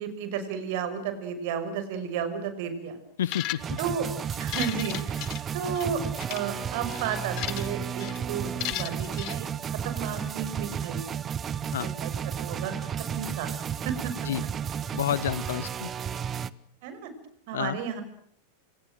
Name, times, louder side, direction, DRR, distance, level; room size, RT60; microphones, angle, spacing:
voice 1, 0.0-3.0 3.8-4.1 4.4-11.0 11.8-12.7 13.1-13.5 13.8-14.1 16.8-17.1 17.5-18.0, right 7 dB, 50° right, 10 dB, 6.0 m, -33 dB
voice 2, 3.2-3.8 11.7-11.9 14.2-14.4 14.9-15.9 17.5-17.8, left 10 dB, 60° left, 21 dB, 1.0 m, -29 dB
sound 1, 3.2-3.9 4.3-5.9 6.2-6.4 6.9-7.7 8.0-8.2 8.6-9.4, left 20 dB, 40° left, 1.1 m, -35 dB
Metal Mix, 3.6-16.5, right 8 dB, 25° right, 1.0 m, -33 dB
28.5 x 27.5 x 6.4 m, 0.67 s
figure-of-eight pair, 90°, 0 cm